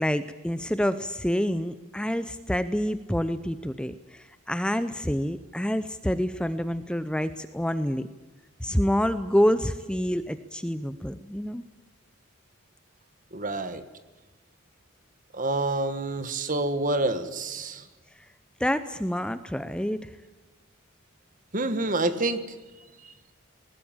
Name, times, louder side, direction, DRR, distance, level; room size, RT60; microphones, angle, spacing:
voice 1, 0.0-8.1 8.6-11.6 18.2-18.3 18.6-20.1, equal, 5° left, 12 dB, 0.6 m, -27 dB
voice 2, 13.3-13.8 15.3-17.8 21.5-22.4, right 2 dB, 40° right, 11 dB, 1.6 m, -27 dB
20.0 x 19.5 x 8.9 m, 1.2 s
head